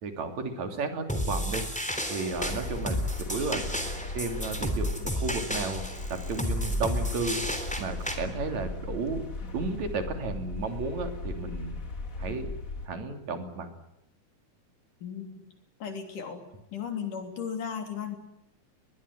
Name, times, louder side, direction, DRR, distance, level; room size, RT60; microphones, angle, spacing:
voice 1, 0.0-1.6 2.1-3.0 3.3-3.6 4.1-5.8 6.1-7.4 7.8-9.2 9.5-11.7 12.2-12.5 12.9-13.7, right 3 dB, 65° right, 6 dB, 4.2 m, -33 dB
sound 1, 1.1-8.1, equal, ahead, 3.0 m, -32 dB
sound 2, 2.3-12.9, left 2 dB, 30° left, 2.1 m, -38 dB
voice 2, 15.0-15.4 15.8-16.5 16.7-18.2, left 7 dB, 85° left, 6 dB, 4.9 m, -35 dB
22.0 x 21.5 x 9.9 m, 0.81 s
omnidirectional pair, 3.6 m